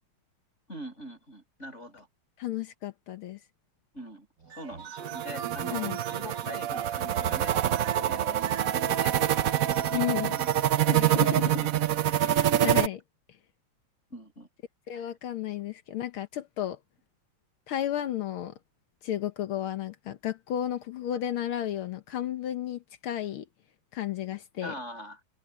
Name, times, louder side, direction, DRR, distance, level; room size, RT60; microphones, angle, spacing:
voice 1, 0.7-2.1 3.9-9.4 9.7-10.7 11.1-12.7 14.1-14.5 14.9-15.1 24.6-25.2, equal, 30° left, 6.8 m, -44 dB
voice 2, 2.4-3.4 5.7-6.0 9.9-10.4 10.9-11.7 12.3-13.0 14.9-16.8 17.7-18.5 19.0-23.5 23.9-24.7, left 11 dB, 80° left, 1.9 m, -33 dB
sound 1, 4.4-12.7, right 7 dB, 55° right, 2.4 m, -44 dB
sound 2, 5.0-12.9, right 11 dB, 75° right, 0.7 m, -26 dB
omnidirectional pair, 2.3 m